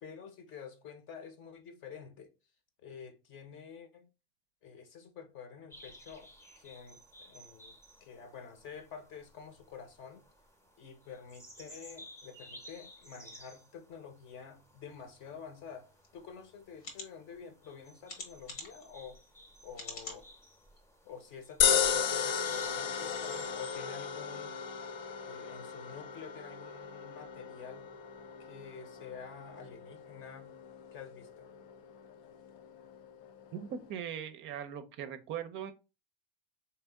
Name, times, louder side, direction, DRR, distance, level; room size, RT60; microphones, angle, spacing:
voice 1, 0.0-2.3 2.8-4.1 4.6-10.3 10.8-19.2 19.6-20.3 21.0-24.6 25.2-27.9 28.4-30.5 30.9-31.5, left 6 dB, 40° left, 0.9 m, -49 dB
sound 1, 5.7-23.8, equal, 10° left, 0.8 m, -55 dB
Mouse Click, 16.0-16.1 16.8-17.1 18.1-18.8 19.7-20.2 20.8-20.9 21.2-21.3, left 3 dB, 75° left, 1.5 m, -44 dB
sound 2, 21.6-33.9, left 8 dB, 60° left, 0.6 m, -35 dB
voice 2, 33.5-35.7, right 8 dB, 40° right, 0.5 m, -40 dB
3.5 x 3.0 x 3.5 m
hypercardioid pair, 105°, 31 cm